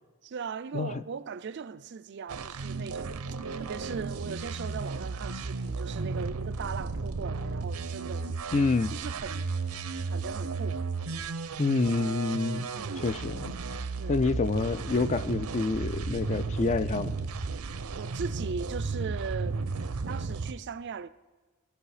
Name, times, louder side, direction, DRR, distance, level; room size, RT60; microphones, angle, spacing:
voice 1, 0.2-3.2 3.6-8.3 8.9-9.5 10.1-10.8 12.7-13.1 14.0-14.2 18.0-19.6 20.1-21.1, right 5 dB, 50° right, 0.4 m, -39 dB
sound 1, 2.3-20.5, right 4 dB, 85° right, 0.7 m, -34 dB
voice 2, 8.5-9.0 11.6-12.7 13.0-13.5 14.1-17.2, left 3 dB, 30° left, 0.3 m, -27 dB
17.5 x 12.0 x 4.9 m
head